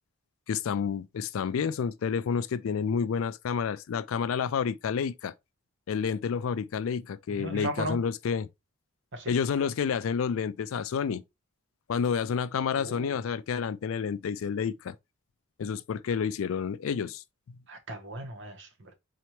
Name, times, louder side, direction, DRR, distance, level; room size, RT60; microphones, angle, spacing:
voice 1, 0.5-5.3 5.9-8.5 9.3-11.2 11.9-15.0 15.6-17.2, left 6 dB, 75° left, 0.4 m, -29 dB
voice 2, 7.3-8.0 9.1-9.3 12.8-13.2 17.7-18.7, right 1 dB, 65° right, 1.0 m, -36 dB
4.2 x 2.9 x 3.0 m
head